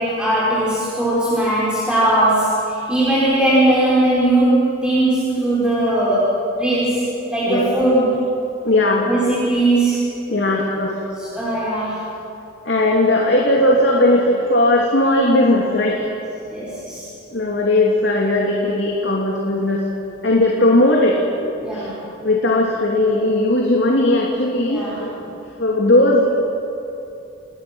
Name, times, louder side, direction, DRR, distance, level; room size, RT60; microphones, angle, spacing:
voice 1, 0.0-7.0 7.3-8.2 9.1-10.0 11.2-12.0 16.5-17.1 21.6-21.9 24.7-25.3, right 1 dB, 5° right, -10 dB, 5.3 m, -19 dB
voice 2, 8.6-9.1 10.3-11.0 12.6-16.1 17.3-19.8 20.2-21.9 22.2-25.1 25.6-26.3, left 1 dB, 65° left, -2 dB, 2.7 m, -17 dB
29.5 x 20.5 x 6.3 m, 2.8 s
head